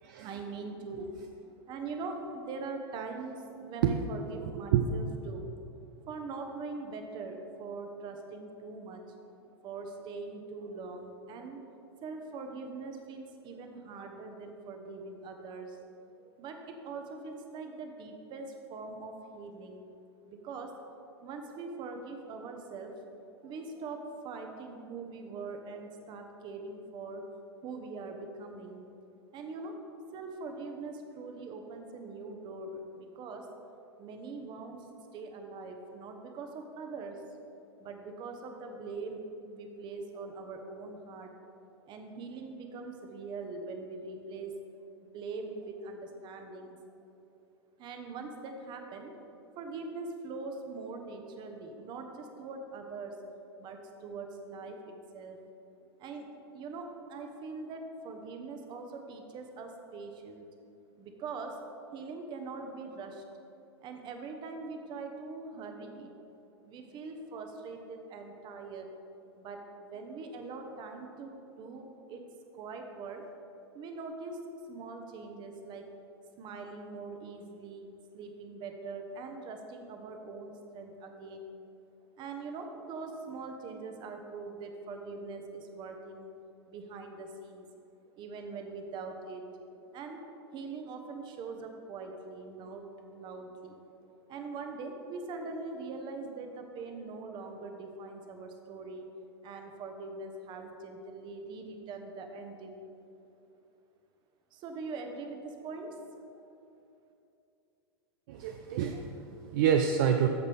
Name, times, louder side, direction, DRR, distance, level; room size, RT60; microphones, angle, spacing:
voice 1, 0.1-5.6 6.1-9.1 9.6-11.6 12.0-15.9 16.2-19.9 20.2-20.7 21.2-27.2 27.6-28.9 29.3-29.8 30.1-33.5 34.0-34.8 35.1-37.2 37.8-41.3 41.9-44.6 45.0-46.8 47.8-49.1 49.6-53.2 53.6-55.4 56.0-60.5 61.0-61.6 61.9-63.2 63.8-66.1 66.6-69.0 69.4-72.2 72.5-73.2 73.7-76.0 76.4-81.5 82.2-86.3 86.7-87.6 88.2-89.4 89.9-99.1 99.4-102.9 104.5-106.1, right 3 dB, 35° right, 4 dB, 1.1 m, -42 dB
voice 2, 4.4-4.8 108.3-110.3, right 8 dB, 50° right, 5 dB, 0.5 m, -28 dB
14.0 x 5.3 x 3.5 m, 2.8 s
figure-of-eight pair, 100°, 14 cm